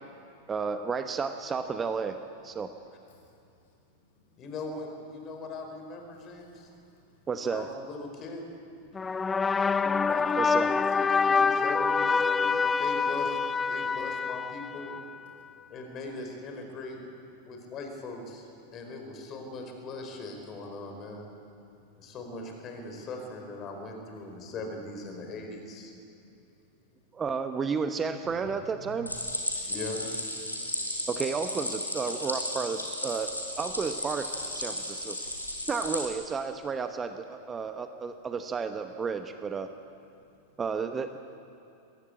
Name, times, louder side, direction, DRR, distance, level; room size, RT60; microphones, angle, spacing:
voice 1, 0.5-2.2 2.4-2.7 7.3-7.7 10.4-10.7 27.1-29.1 31.1-33.3 33.6-35.3 35.7-39.7 40.6-41.2, right 5 dB, 20° right, 8 dB, 1.0 m, -32 dB
voice 2, 3.1-3.4 3.7-4.4 6.1-7.3 8.8-9.0 9.4-10.1 15.4-15.7 21.7-21.8 22.0-22.1 24.2-24.3 26.2-26.3 28.2-29.0 29.5-29.7, left 1 dB, 55° left, 1 dB, 6.0 m, -55 dB
voice 3, 4.4-6.7 7.4-8.4 10.1-13.4 13.7-14.9 15.7-17.0 17.4-21.3 22.0-25.9 29.7-30.1, left 2 dB, 30° left, 3 dB, 4.8 m, -40 dB
sound 1, 9.0-15.3, left 5 dB, 15° left, 0.4 m, -26 dB
Stream, 29.1-36.1, left 1 dB, 85° left, 4.1 m, -34 dB
22.5 x 16.5 x 8.7 m, 2.6 s
figure-of-eight pair, 90°, 0 cm